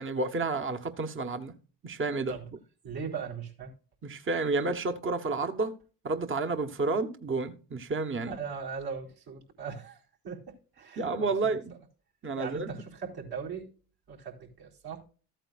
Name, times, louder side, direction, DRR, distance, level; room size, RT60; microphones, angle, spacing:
voice 1, 0.0-1.5 1.8-2.4 4.0-5.8 6.0-8.3 11.0-11.7 12.2-12.7, right 3 dB, 30° right, 1.2 m, -30 dB
voice 2, 2.8-3.7 8.2-11.5 12.4-13.7 14.1-15.1, right 6 dB, 65° right, 4.1 m, -39 dB
14.0 x 8.9 x 2.5 m
supercardioid pair, 70°, 40 cm